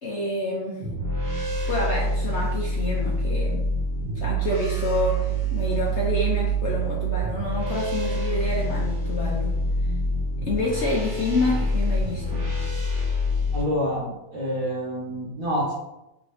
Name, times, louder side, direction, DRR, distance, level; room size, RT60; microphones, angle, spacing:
voice 1, 0.0-0.8 1.7-3.7 4.1-9.5 10.4-12.4, left 2 dB, 70° left, -5 dB, 0.6 m, -28 dB
sound 1, 0.8-13.6, right 1 dB, 30° right, 1.4 m, -26 dB
voice 2, 13.5-15.7, equal, 50° right, -8 dB, 1.4 m, -27 dB
3.7 x 3.5 x 3.4 m, 0.92 s
omnidirectional pair, 2.2 m